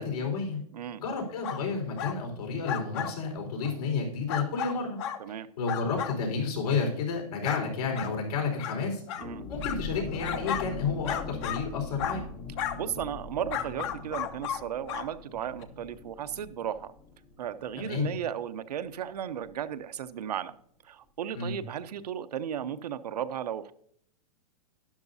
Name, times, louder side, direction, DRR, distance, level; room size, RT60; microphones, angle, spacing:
voice 1, 0.0-0.6 1.0-5.0 5.6-9.0 9.5-12.2 17.8-18.1 21.3-21.5, left 4 dB, 75° left, 1 dB, 4.4 m, -31 dB
sound 1, 1.4-1.6 2.0-2.2 2.7-3.1 3.6-3.7 4.3-5.2 5.7-6.2 6.7-6.8 7.4-7.6 7.9-8.1 8.6-8.8 9.1-9.3 9.6-10.7 11.0-11.6 12.0-12.2 12.6-12.8 13.5-14.6 14.9-15.1 15.6-15.7, left 9 dB, 45° left, 1.0 m, -33 dB
sound 2, 9.2-18.6 18.8-18.9 19.3-19.6, left 4 dB, 25° left, 0.8 m, -42 dB
voice 2, 12.8-16.9 17.4-20.5 20.8-23.7, right 9 dB, 90° right, 11 dB, 0.8 m, -35 dB
12.0 x 11.0 x 2.7 m, 0.66 s
hypercardioid pair, 150°, 20 cm